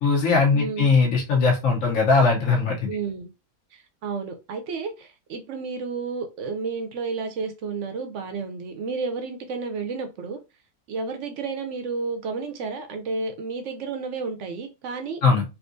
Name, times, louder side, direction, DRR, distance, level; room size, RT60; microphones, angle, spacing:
voice 1, 0.0-2.9 15.2-15.4, left 4 dB, 65° left, -1 dB, 1.2 m, -20 dB
voice 2, 0.5-0.9 2.9-3.3 3.7-10.4 10.9-15.2, right 4 dB, 65° right, 6 dB, 0.8 m, -31 dB
3.5 x 2.7 x 2.5 m, 0.27 s
omnidirectional pair, 1.5 m